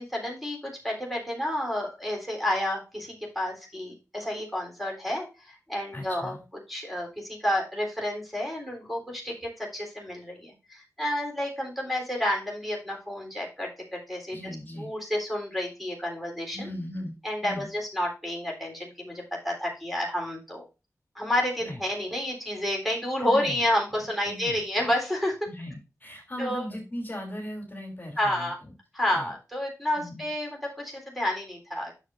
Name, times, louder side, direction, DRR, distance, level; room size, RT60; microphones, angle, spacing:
voice 1, 0.0-6.4 6.7-14.4 14.7-16.6 17.2-20.6 21.2-25.4 26.4-26.6 28.2-28.6 28.9-31.9, left 1 dB, ahead, -1 dB, 3.7 m, -30 dB
voice 2, 5.9-6.4 14.3-14.9 16.5-17.1 17.4-17.7 21.6-21.8 23.2-23.6 24.2-24.9 25.4-28.7 29.1-29.3 29.9-30.3, left 1 dB, 30° left, 0 dB, 3.0 m, -38 dB
9.9 x 6.6 x 2.6 m, 0.29 s
cardioid pair, 55°, 6 cm